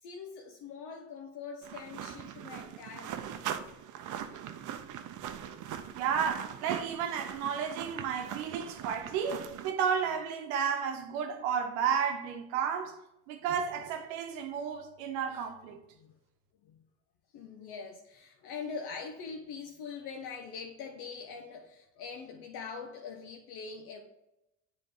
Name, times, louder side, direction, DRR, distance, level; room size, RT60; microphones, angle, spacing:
voice 1, 0.0-3.5 16.0-16.1 16.6-16.8 17.3-24.0, left 5 dB, 70° left, 0.8 m, -43 dB
sound 1, 1.6-9.7, right 9 dB, 50° right, 0.6 m, -41 dB
voice 2, 5.9-13.0 13.3-15.8, right 7 dB, 80° right, 0.9 m, -32 dB
7.7 x 3.3 x 4.8 m
supercardioid pair, 75°, 41 cm